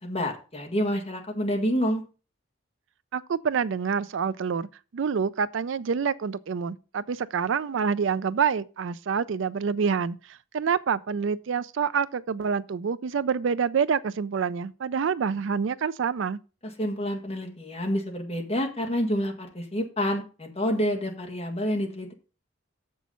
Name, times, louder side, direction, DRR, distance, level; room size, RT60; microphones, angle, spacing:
voice 1, 0.0-2.0 16.6-22.1, equal, 30° left, 1.9 m, -28 dB
voice 2, 3.1-4.7 4.9-16.4, right 6 dB, 65° right, 0.4 m, -27 dB
7.2 x 6.2 x 5.6 m
head